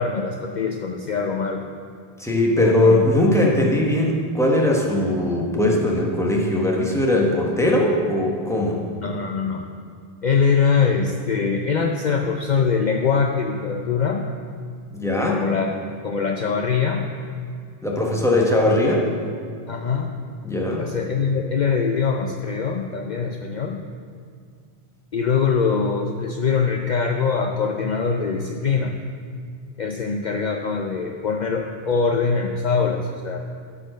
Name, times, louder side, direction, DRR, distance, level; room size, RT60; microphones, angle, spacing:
voice 1, 0.0-1.6 2.6-3.1 9.0-9.6 10.2-14.3 15.3-15.8 16.0-17.1 19.7-20.1 20.8-23.8 25.1-29.0 29.8-33.4, left 5 dB, 50° left, 3 dB, 0.7 m, -23 dB
voice 2, 2.2-8.8 14.9-15.4 17.8-19.1 20.4-20.9, left 1 dB, 5° left, -2 dB, 1.4 m, -20 dB
13.5 x 5.0 x 6.4 m, 2.2 s
omnidirectional pair, 1.0 m